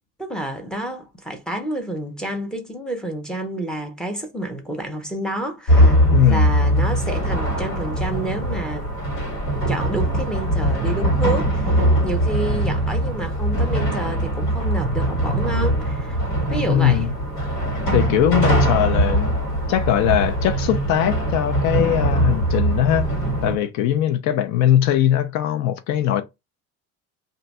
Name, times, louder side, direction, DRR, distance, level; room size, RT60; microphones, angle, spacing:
voice 1, 0.2-9.2 9.7-16.2 16.5-17.1, right 1 dB, 5° left, 0.5 m, -29 dB
sound 1, 5.7-23.6, right 1 dB, 85° left, 1.6 m, -21 dB
voice 2, 6.1-6.5 16.7-17.1 17.9-19.4 19.7-23.1 23.4-26.2, left 11 dB, 70° left, 0.5 m, -20 dB
2.6 x 2.2 x 4.0 m
cardioid pair, 175°, 29 cm